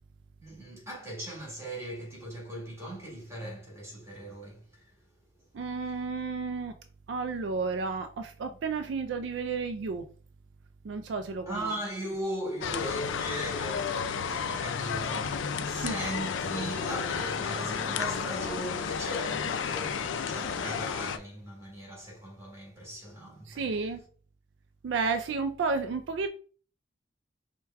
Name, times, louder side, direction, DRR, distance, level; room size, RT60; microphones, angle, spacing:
voice 1, 0.4-4.9 11.5-23.6, equal, 15° right, 1.6 m, -39 dB
voice 2, 5.5-6.8 7.1-10.1 10.8-11.7 15.8-16.0 23.5-24.0 24.8-26.3, right 4 dB, 70° right, 0.3 m, -32 dB
sound 1, 12.6-21.2, left 6 dB, 75° left, 0.4 m, -32 dB
sound 2, 16.1-21.1, left 1 dB, 5° left, 1.3 m, -43 dB
4.6 x 2.2 x 3.4 m
head